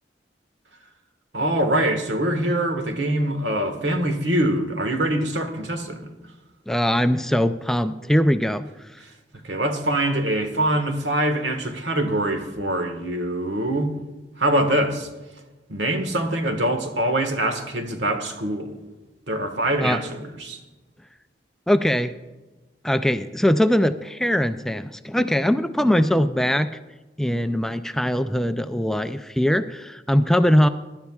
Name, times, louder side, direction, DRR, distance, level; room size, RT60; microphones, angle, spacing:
voice 1, 1.3-6.1 9.4-13.9 14.4-15.1 15.7-18.8 19.3-20.6, right 1 dB, 80° right, 1.5 m, -24 dB
voice 2, 6.7-8.6 19.8-20.0 21.7-22.1 22.8-26.7 27.2-30.7, equal, 5° left, 0.3 m, -21 dB
22.5 x 11.5 x 2.4 m
head